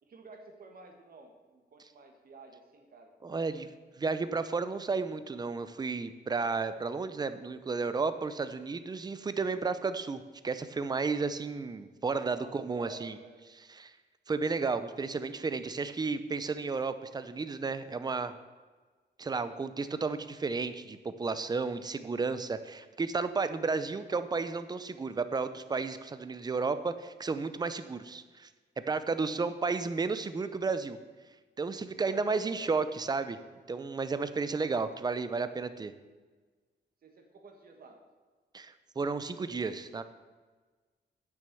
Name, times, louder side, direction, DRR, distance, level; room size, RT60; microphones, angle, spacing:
voice 1, 0.0-3.7 12.3-13.4 18.2-18.4 29.1-29.4 32.0-33.1 37.0-38.0, right 3 dB, 55° right, 3 dB, 1.8 m, -52 dB
voice 2, 3.2-3.7 4.0-13.2 13.7-13.9 14.3-18.3 19.2-28.5 28.9-31.0 31.6-33.4 33.7-35.9 38.5-40.0, right 4 dB, 25° right, 12 dB, 0.6 m, -33 dB
9.6 x 7.1 x 6.9 m, 1.4 s
wide cardioid pair, 150°, 18 cm